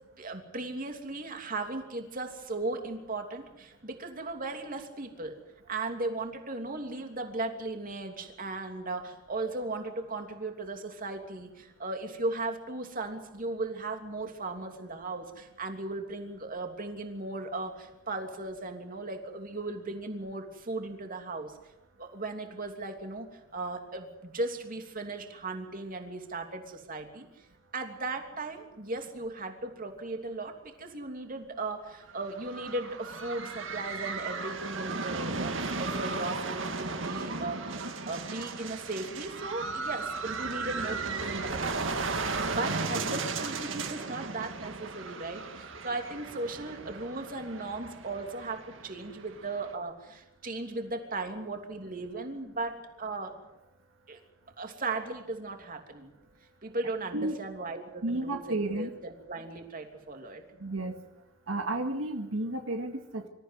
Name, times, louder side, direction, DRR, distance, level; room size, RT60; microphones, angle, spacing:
voice 1, 0.2-5.3 5.7-21.5 22.0-23.3 23.5-27.3 27.7-41.9 42.5-53.3 54.1-54.2 54.6-56.1 56.6-60.4, right 2 dB, 45° right, 4 dB, 3.0 m, -37 dB
sound 1, 32.1-49.7, right 4 dB, 70° right, 2.2 m, -35 dB
voice 2, 58.0-59.0 60.6-61.0 61.5-63.3, right 2 dB, 85° right, 4 dB, 2.0 m, -32 dB
26.0 x 14.5 x 9.4 m, 0.92 s
head